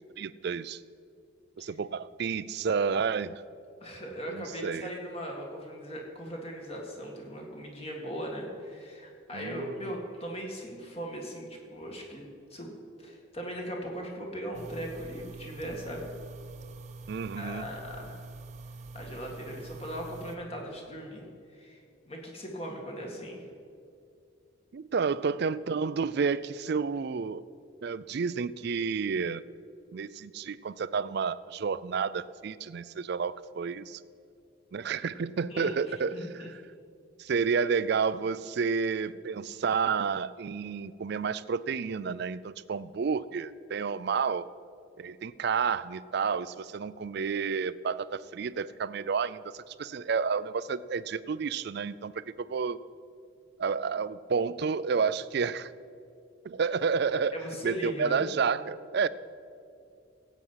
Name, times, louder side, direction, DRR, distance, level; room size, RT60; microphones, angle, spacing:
voice 1, 0.2-0.8 1.6-3.4 4.3-4.9 9.3-9.9 17.1-17.7 24.7-27.4 27.8-29.4 29.9-34.0 34.7-36.6 37.2-44.5 45.0-52.8 53.6-55.7 56.4-57.4 57.6-59.1, right 5 dB, 55° right, 16 dB, 0.4 m, -30 dB
voice 2, 3.8-12.7 13.0-16.1 17.4-18.2 18.9-21.8 22.1-23.5 35.5-36.5 57.3-58.3, equal, 30° left, 0 dB, 2.0 m, -39 dB
sound 1, 14.5-20.3, right 3 dB, 35° right, 0.9 m, -45 dB
16.0 x 8.3 x 5.7 m, 2.4 s
head